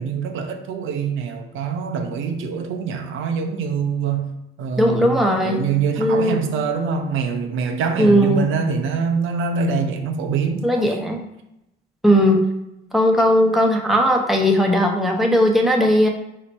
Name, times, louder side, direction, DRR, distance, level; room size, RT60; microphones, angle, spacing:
voice 1, 0.0-10.7, right 5 dB, 85° right, 0.7 m, -24 dB
voice 2, 4.8-5.6 6.0-6.4 8.0-8.5 10.6-11.2 12.0-12.5 12.9-16.1, equal, ahead, 0.9 m, -17 dB
4.2 x 2.9 x 4.4 m
cardioid pair, 90°, 20 cm